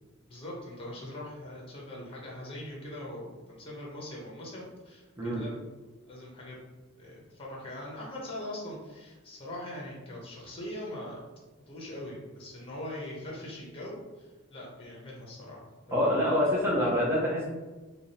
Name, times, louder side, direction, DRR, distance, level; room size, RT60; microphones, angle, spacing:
voice 1, 0.3-5.5 6.0-6.6 7.0-11.2 11.7-15.6 15.9-16.2, left 1 dB, 25° left, -3 dB, 0.9 m, -41 dB
voice 2, 15.9-17.4, left 1 dB, 10° right, -7 dB, 0.7 m, -26 dB
3.5 x 2.3 x 4.0 m, 1.2 s
head